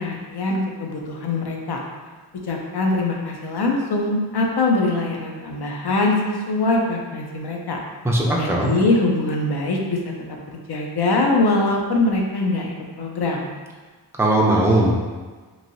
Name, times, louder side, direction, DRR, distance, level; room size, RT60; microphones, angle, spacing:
voice 1, 0.0-1.8 2.5-7.8 8.4-10.1 10.5-12.7 13.0-13.5, left 2 dB, 70° left, 0 dB, 0.6 m, -22 dB
voice 2, 8.0-8.7 14.2-14.9, right 1 dB, 5° right, -2 dB, 0.4 m, -18 dB
3.1 x 2.6 x 2.6 m, 1.4 s
wide cardioid pair, 75°, 42 cm